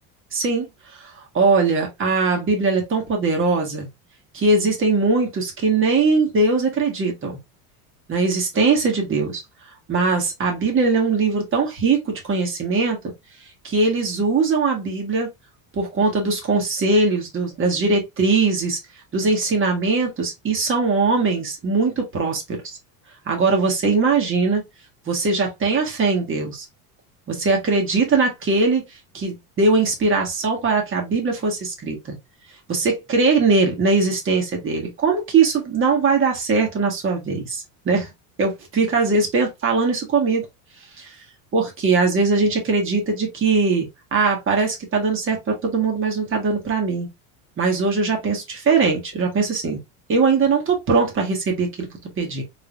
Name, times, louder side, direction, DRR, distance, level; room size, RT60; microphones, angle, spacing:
voice 1, 0.3-0.7 1.0-3.9 4.3-7.4 8.1-9.4 9.9-13.0 13.6-15.3 15.7-18.8 19.1-22.8 23.2-24.6 25.1-26.6 27.3-28.8 29.1-32.2 32.7-38.1 38.4-40.5 41.0-41.1 41.5-47.1 47.6-49.8 50.1-51.9 52.2-52.4, right 4 dB, 30° right, 1.6 m, -21 dB
3.8 x 3.6 x 2.5 m
cardioid pair, 140°, 44 cm